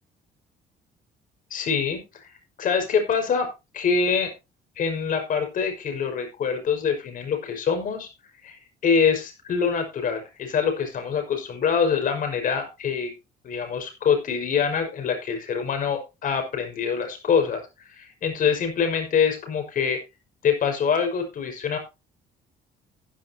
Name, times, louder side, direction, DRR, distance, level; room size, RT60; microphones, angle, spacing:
voice 1, 1.5-2.3 2.6-3.5 3.7-4.3 4.8-8.1 8.4-13.1 13.4-17.6 18.0-20.0 20.4-21.8, left 6 dB, 55° left, 5 dB, 5.8 m, -25 dB
15.5 x 10.5 x 3.0 m, 0.27 s
cardioid pair, 110°, 17 cm